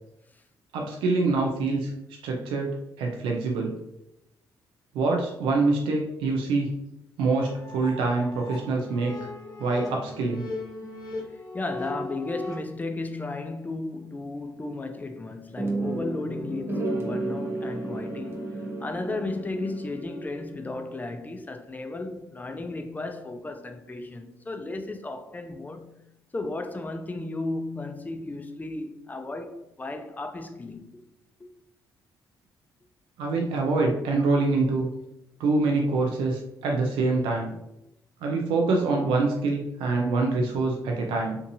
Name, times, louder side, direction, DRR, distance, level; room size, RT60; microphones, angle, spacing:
voice 1, 0.7-1.9 2.2-3.8 4.9-6.7 7.2-9.2 9.6-10.5 33.2-34.9 35.4-37.5 38.2-41.4, right 3 dB, 85° right, 0.4 m, -25 dB
sound 1, 7.2-12.6, left 2 dB, 45° left, 0.8 m, -38 dB
voice 2, 11.3-26.0 26.3-31.0, left 2 dB, 20° left, 0.4 m, -34 dB
sound 2, 15.6-20.7, right 2 dB, 30° right, 0.8 m, -32 dB
2.7 x 2.5 x 2.6 m
supercardioid pair, 60°, 9 cm